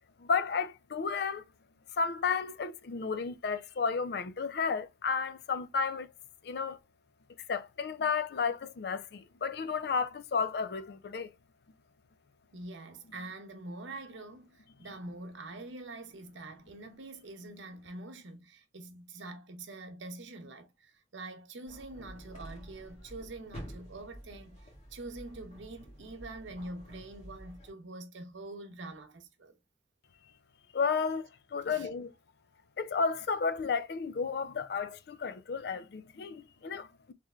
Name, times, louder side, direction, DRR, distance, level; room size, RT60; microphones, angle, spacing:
voice 1, 0.2-1.4 2.0-6.1 6.4-6.8 7.5-11.3 30.7-32.1 32.8-37.1, left 5 dB, 60° left, 0.4 m, -32 dB
voice 2, 12.5-24.6 24.9-29.6 31.6-31.9, right 2 dB, 85° right, 0.8 m, -45 dB
sound 1, 21.7-27.7, equal, 35° left, 1.5 m, -49 dB
3.3 x 3.2 x 2.3 m
head